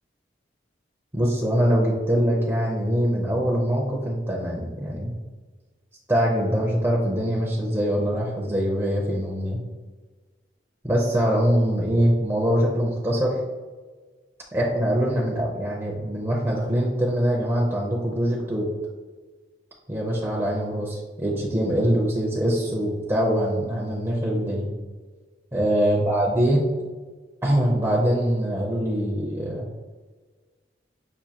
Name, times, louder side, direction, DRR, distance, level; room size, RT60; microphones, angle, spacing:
voice 1, 1.1-5.1 6.1-9.6 10.8-13.4 14.5-18.7 19.9-24.7 25.5-26.7 27.4-29.7, equal, 15° right, -4 dB, 0.5 m, -23 dB
6.1 x 2.5 x 2.8 m, 1.4 s
head